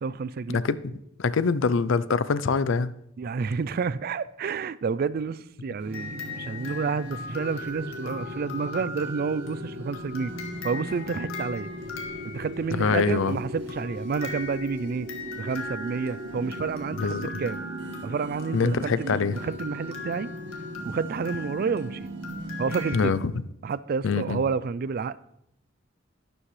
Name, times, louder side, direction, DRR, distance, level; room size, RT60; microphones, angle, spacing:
voice 1, 0.0-0.6 3.2-10.3 10.6-11.7 12.2-15.1 15.4-17.6 18.0-20.3 20.8-22.1 22.6-23.2 23.6-25.2, right 5 dB, 50° right, 0.4 m, -30 dB
voice 2, 1.2-3.0 12.8-13.4 17.0-17.3 18.5-19.4 22.9-23.3 24.0-24.4, left 5 dB, 70° left, 0.5 m, -24 dB
sound 1, 5.8-23.0, right 1 dB, 65° right, 1.8 m, -38 dB
sound 2, 5.9-12.9 13.7-23.1, left 3 dB, 90° left, 1.9 m, -40 dB
12.0 x 9.9 x 3.2 m
head